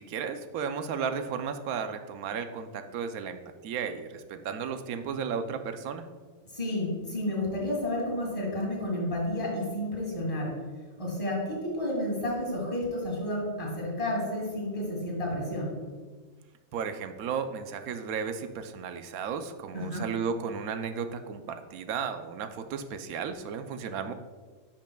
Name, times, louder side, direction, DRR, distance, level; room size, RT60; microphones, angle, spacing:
voice 1, 0.0-6.0 16.7-24.1, right 6 dB, 80° right, 9 dB, 1.1 m, -34 dB
voice 2, 6.5-10.5 11.0-15.8 19.7-20.1, left 1 dB, 25° left, -3 dB, 2.0 m, -31 dB
10.0 x 5.7 x 2.3 m, 1.4 s
omnidirectional pair, 1.5 m